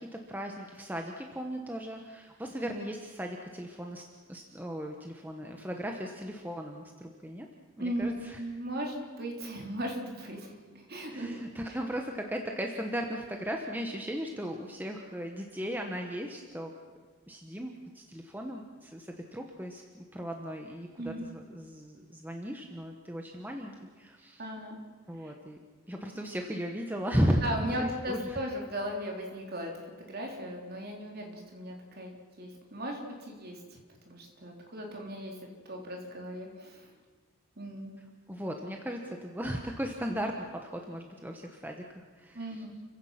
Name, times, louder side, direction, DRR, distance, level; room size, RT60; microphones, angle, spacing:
voice 1, 0.0-7.5 7.8-8.4 11.1-16.7 17.3-24.5 25.1-25.6 25.9-28.4 38.3-42.7, equal, 10° right, 2 dB, 1.2 m, -36 dB
voice 2, 7.8-11.4 21.0-21.3 24.4-24.8 25.1-25.3 27.4-29.8 30.1-33.6 34.1-35.4 35.7-36.9 37.6-37.9 42.3-42.7, equal, 45° right, 0 dB, 3.8 m, -37 dB
29.5 x 16.0 x 5.9 m, 1.5 s
head